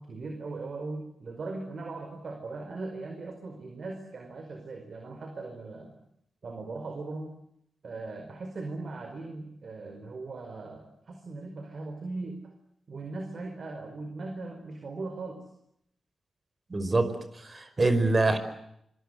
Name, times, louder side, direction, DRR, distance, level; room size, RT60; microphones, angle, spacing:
voice 1, 0.0-6.0 6.4-7.3 7.8-12.5 12.9-15.4, right 3 dB, 60° right, 5 dB, 5.0 m, -39 dB
voice 2, 16.7-17.1 17.4-18.4, right 2 dB, 40° right, 11 dB, 5.2 m, -24 dB
26.0 x 24.5 x 8.2 m, 0.76 s
cardioid pair, 50°, 0 cm